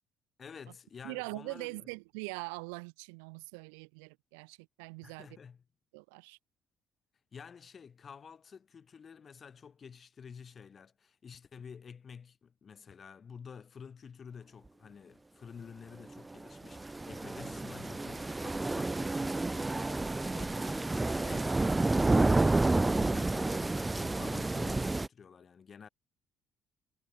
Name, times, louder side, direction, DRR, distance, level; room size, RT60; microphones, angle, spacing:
voice 1, 0.4-1.9 5.0-5.6 7.3-25.9, left 6 dB, 45° left, 2.9 m, -50 dB
voice 2, 1.0-5.3 5.9-6.4, right 34 dB, 80° right, 0.8 m, -42 dB
sound 1, 16.1-25.1, right 2 dB, 20° right, 0.4 m, -30 dB
hypercardioid pair, 55°, 0 cm